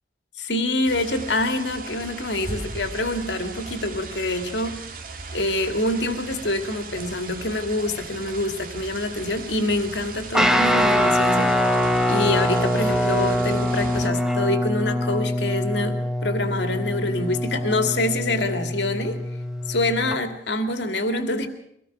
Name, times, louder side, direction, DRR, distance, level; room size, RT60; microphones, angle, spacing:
voice 1, 0.4-4.9 5.3-19.3 19.7-21.5, left 2 dB, 75° left, 7 dB, 2.3 m, -26 dB
sound 1, 0.8-14.1, right 3 dB, 50° right, 2.1 m, -38 dB
Guitar, 10.3-20.2, left 1 dB, 5° right, 1.2 m, -23 dB
23.5 x 18.5 x 6.1 m, 0.73 s
head